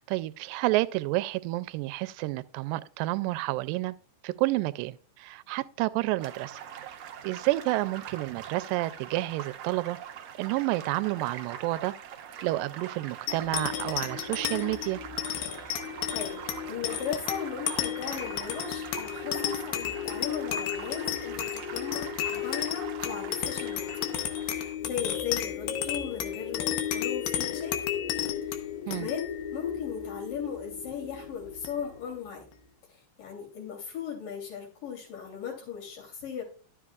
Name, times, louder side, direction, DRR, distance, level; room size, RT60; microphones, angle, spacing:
voice 1, 0.0-4.0 4.2-6.6 7.2-10.0 10.4-11.9 12.4-15.0 28.9-29.1, right 18 dB, 85° right, 2.2 m, -30 dB
sound 1, 6.2-24.7, right 8 dB, 70° right, 1.6 m, -43 dB
sound 2, 13.3-32.1, left 10 dB, 90° left, 2.7 m, -33 dB
voice 2, 16.1-16.4 16.7-23.9 24.4-27.9 28.5-32.4 32.9-36.4, left 7 dB, 70° left, 4.7 m, -37 dB
12.5 x 7.7 x 2.3 m
omnidirectional pair, 3.9 m